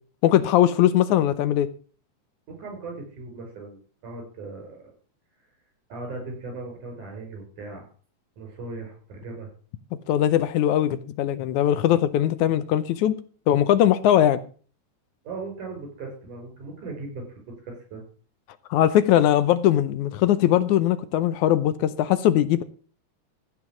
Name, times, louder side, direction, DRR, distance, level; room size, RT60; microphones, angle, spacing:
voice 1, 0.2-1.7 10.1-13.2 13.5-14.4 18.7-22.6, left 11 dB, 80° left, 2.0 m, -20 dB
voice 2, 2.5-4.9 5.9-7.9 8.4-9.5 15.2-18.0, right 3 dB, 75° right, 6.6 m, -38 dB
14.5 x 5.1 x 7.1 m
omnidirectional pair, 3.6 m